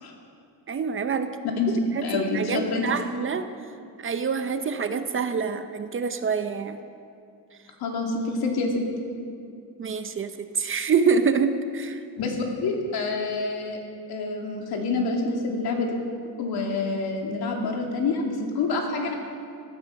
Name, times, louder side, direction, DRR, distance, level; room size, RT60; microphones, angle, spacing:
voice 1, 0.7-1.3 2.0-3.5 4.0-6.8 9.8-12.0, right 5 dB, 30° right, 9 dB, 0.7 m, -26 dB
voice 2, 1.6-2.8 7.8-8.9 12.2-13.8 14.1-15.9 16.4-19.1, left 3 dB, 70° left, 1 dB, 2.6 m, -27 dB
17.5 x 12.5 x 5.9 m, 2.4 s
cardioid pair, 150°, 39 cm